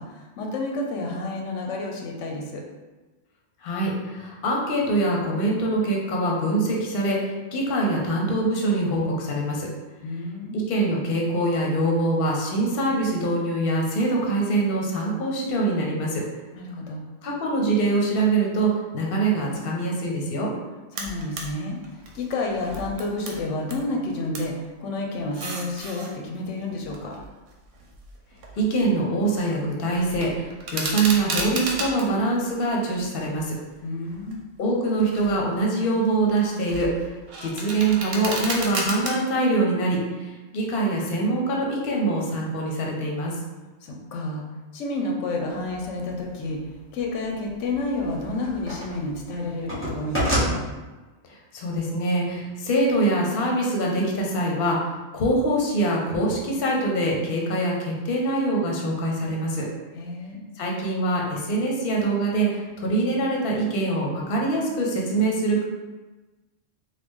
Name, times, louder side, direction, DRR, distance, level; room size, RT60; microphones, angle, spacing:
voice 1, 0.0-2.6 10.0-10.6 16.5-17.1 20.9-27.1 33.8-34.4 43.8-44.4 44.7-46.6 46.9-50.6 59.9-60.4, left 2 dB, 90° left, 0 dB, 0.9 m, -30 dB
voice 2, 3.6-9.7 10.5-16.2 17.2-20.5 28.6-33.5 34.6-36.9 37.4-43.4 51.3-59.6 60.6-65.7, right 2 dB, 55° left, -1 dB, 0.8 m, -24 dB
sound 1, 21.0-21.5 21.8-23.8 24.1-24.5 25.2-26.1 26.8-28.9 29.2-29.6 29.9-32.1 32.6-33.5 34.0-34.3 34.9-35.4 35.8-39.1, right 2 dB, 90° right, 1.0 m, -33 dB
sound 2, 45.9-46.0 47.7-49.0 49.3-50.5, equal, 10° left, 0.7 m, -26 dB
3.1 x 2.2 x 3.5 m, 1.2 s
omnidirectional pair, 1.2 m